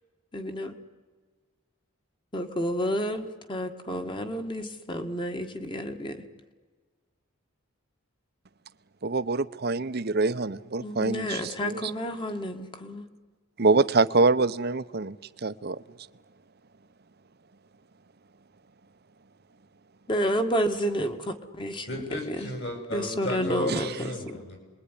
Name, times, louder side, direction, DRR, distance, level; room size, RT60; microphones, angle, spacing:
voice 1, 0.3-0.7 2.3-6.3 10.8-13.0 20.1-21.9 22.3-22.5 22.9-23.9 24.3-24.4, equal, 25° left, 1.8 m, -30 dB
voice 2, 9.0-11.9 13.6-15.2 15.4-15.8 23.7-23.8, right 3 dB, 50° right, 0.8 m, -25 dB
voice 3, 21.9-24.6, left 1 dB, 55° left, 7.4 m, -34 dB
27.5 x 21.5 x 10.0 m
head